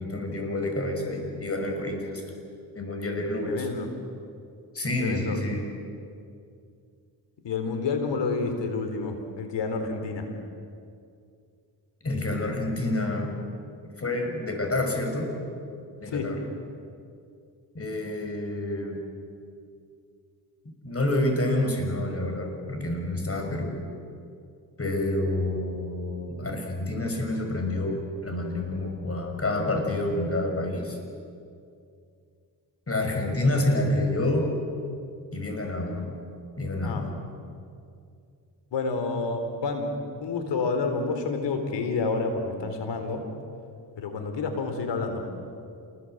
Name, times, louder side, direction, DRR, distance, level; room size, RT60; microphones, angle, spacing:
voice 1, 0.0-2.4 2.7-3.6 4.7-5.6 12.0-13.3 14.0-15.3 16.0-16.4 17.7-19.0 20.8-23.8 24.8-31.0 32.9-34.5 35.3-36.1 36.6-37.0, left 1 dB, 35° left, 3 dB, 6.0 m, -28 dB
voice 2, 3.4-3.9 5.0-5.4 7.4-10.3 16.0-16.3 36.8-37.1 38.7-39.9 40.2-43.2 44.0-45.2, left 4 dB, 85° left, 6 dB, 3.7 m, -29 dB
27.0 x 21.0 x 7.8 m, 2.4 s
cardioid pair, 70°, 42 cm